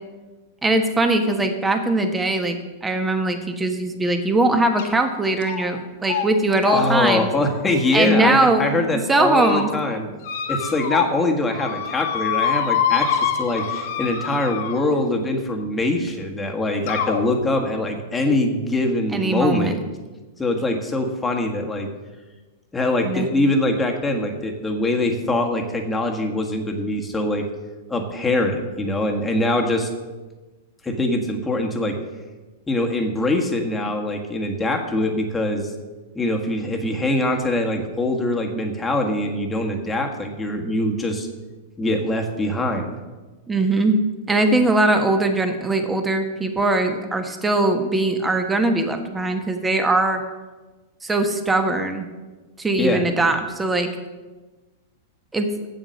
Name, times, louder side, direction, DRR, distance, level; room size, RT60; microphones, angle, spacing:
voice 1, 0.6-7.3 7.9-8.6 8.9-9.7 19.1-19.8 23.0-23.3 43.5-44.0 44.3-50.2 51.0-52.1 52.6-53.9 55.3-55.5, right 2 dB, 10° right, 6 dB, 1.3 m, -20 dB
sound 1, 4.8-5.1 5.4-5.8 6.0-6.3 6.6-8.6 9.1-9.6 10.2-11.2 11.5-15.1 16.1-16.2 16.9-17.2, left 8 dB, 60° left, 1.4 m, -26 dB
voice 2, 6.6-10.1 10.5-19.8 20.4-21.9 22.7-27.5 27.9-29.9 30.8-32.0 32.7-35.7 36.1-41.3 41.8-42.9 52.8-53.0, left 2 dB, 15° left, 2 dB, 1.5 m, -23 dB
7.9 x 7.5 x 6.4 m, 1.2 s
hypercardioid pair, 105°, 0 cm